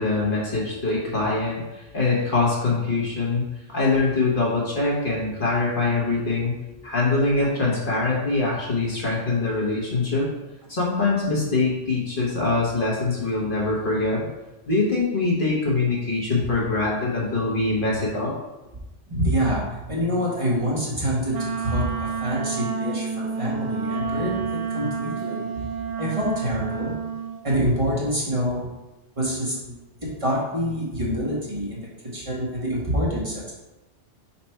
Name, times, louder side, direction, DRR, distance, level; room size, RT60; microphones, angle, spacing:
voice 1, 0.0-6.6 6.8-10.3 10.7-14.3 14.7-18.3, left 3 dB, 50° left, -5 dB, 1.5 m, -23 dB
voice 2, 19.1-25.7 26.0-26.9 27.4-28.8 29.2-31.8 32.1-33.5, equal, 30° right, -6 dB, 1.6 m, -26 dB
Wind instrument woodwind instrument, 21.3-27.4, right 5 dB, 65° right, 0.8 m, -29 dB
5.1 x 4.3 x 4.5 m, 1.0 s
omnidirectional pair, 1.2 m